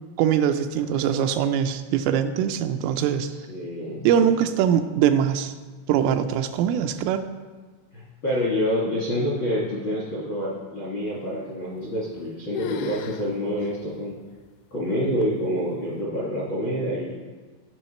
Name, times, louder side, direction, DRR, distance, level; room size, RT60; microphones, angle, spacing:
voice 1, 0.2-3.3 4.0-5.5 5.9-7.3, right 9 dB, 85° right, 8 dB, 3.1 m, -22 dB
voice 2, 3.5-4.1 7.9-14.2 14.7-17.2, equal, 70° left, -6 dB, 1.1 m, -27 dB
sound 1, 11.8-12.3 12.5-13.3 13.6-13.7 14.4-14.5 15.2-15.6, left 8 dB, 85° left, 2.8 m, -34 dB
16.5 x 5.7 x 4.3 m, 1.3 s
omnidirectional pair, 5.7 m